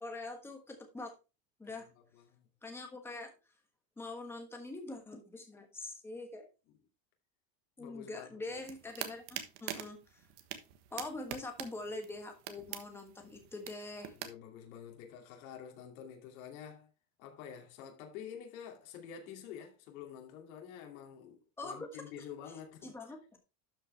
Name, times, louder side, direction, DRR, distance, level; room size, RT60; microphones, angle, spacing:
voice 1, 0.0-1.1 1.6-1.9 2.6-3.3 4.0-6.5 7.8-10.3 10.9-14.2 21.6-21.9 22.8-23.2, left 2 dB, 5° left, 1.3 m, -44 dB
voice 2, 2.1-2.5 7.8-8.6 14.2-16.9 17.2-22.9, left 8 dB, 75° left, 2.7 m, -48 dB
sound 1, 8.5-14.3, right 11 dB, 55° right, 1.4 m, -45 dB
12.5 x 5.6 x 3.3 m
cardioid pair, 175°, 42 cm